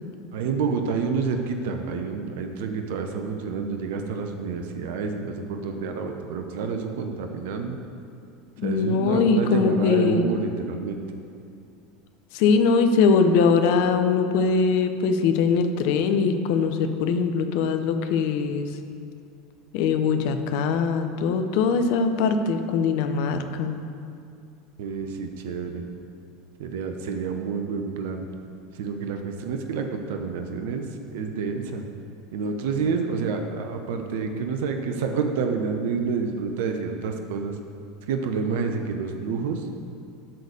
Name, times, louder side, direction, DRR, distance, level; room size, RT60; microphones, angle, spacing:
voice 1, 0.3-7.8 8.6-11.0 24.8-25.9 26.6-28.3 28.7-31.8 32.3-37.6 38.1-39.7, right 5 dB, 70° right, 5 dB, 0.8 m, -28 dB
voice 2, 8.6-10.3 12.3-18.7 19.7-23.7, left 5 dB, 65° left, 8 dB, 0.8 m, -22 dB
12.0 x 4.1 x 6.6 m, 2.5 s
hypercardioid pair, 85°, 0 cm